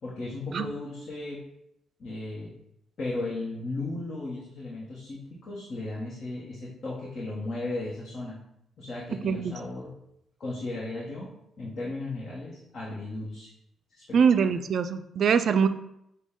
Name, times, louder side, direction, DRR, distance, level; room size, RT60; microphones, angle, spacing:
voice 1, 0.0-1.4 2.0-2.5 3.0-8.4 8.8-9.9 10.4-11.3 11.6-13.5 13.9-14.2, left 2 dB, 50° left, -5 dB, 1.0 m, -35 dB
voice 2, 14.1-15.7, right 6 dB, 60° right, 10 dB, 0.3 m, -23 dB
6.1 x 2.2 x 3.6 m, 0.79 s
cardioid pair, 90°, 0 cm